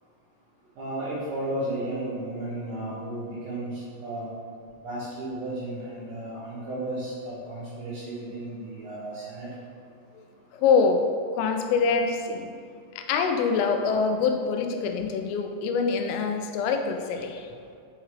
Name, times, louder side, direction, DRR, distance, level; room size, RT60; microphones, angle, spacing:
voice 1, 0.8-4.3 4.8-9.5, right 1 dB, 75° right, -7 dB, 2.5 m, -34 dB
voice 2, 10.5-11.1 11.3-12.5 13.0-17.5, left 5 dB, 90° left, 5 dB, 3.2 m, -25 dB
6.4 x 4.8 x 3.1 m, 2.4 s
omnidirectional pair, 5.7 m